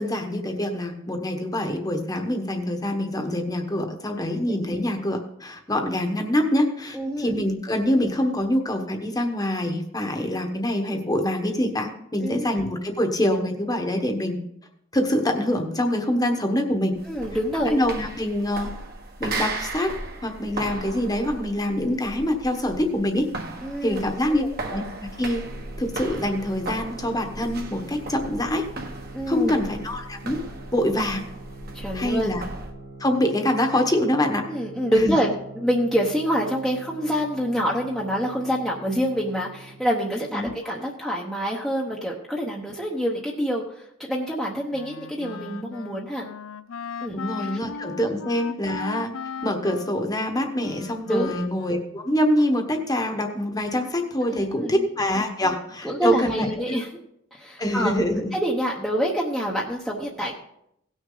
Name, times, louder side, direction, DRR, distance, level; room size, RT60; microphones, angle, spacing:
voice 1, 0.0-14.4 14.9-16.9 17.6-18.7 19.2-19.9 20.2-23.3 23.8-24.4 24.7-25.4 25.8-28.7 29.3-30.4 30.7-31.2 31.9-32.4 33.0-34.4 34.9-35.1 40.3-40.5 47.1-49.1 49.4-56.8 57.6-58.3, left 1 dB, 20° left, 4 dB, 1.2 m, -25 dB
voice 2, 6.9-7.4 12.2-12.6 17.1-17.8 23.6-24.0 24.3-24.5 29.1-29.6 31.7-32.3 34.5-46.2 47.0-47.2 48.0-48.1 51.1-51.4 54.3-54.8 55.4-55.5 55.8-56.9 57.3-57.9 58.3-60.3, equal, ahead, -3 dB, 0.9 m, -26 dB
sound 1, 16.9-32.7, right 2 dB, 50° right, 1.4 m, -36 dB
sound 2, 25.4-40.0, right 2 dB, 80° right, 1.7 m, -44 dB
Wind instrument woodwind instrument, 44.7-52.0, left 6 dB, 80° left, 0.5 m, -38 dB
17.5 x 6.4 x 3.9 m, 0.76 s
head